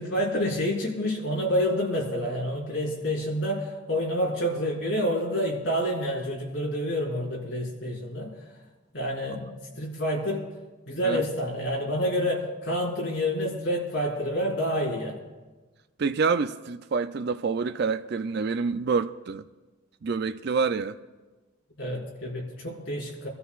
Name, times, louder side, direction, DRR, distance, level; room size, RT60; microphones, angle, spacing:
voice 1, 0.0-8.6 8.9-10.5 10.9-15.3 21.8-23.3, equal, 70° left, 4.6 m, -28 dB
voice 2, 16.0-19.5 20.0-21.0, right 5 dB, 55° right, 0.4 m, -27 dB
25.5 x 13.5 x 2.4 m
head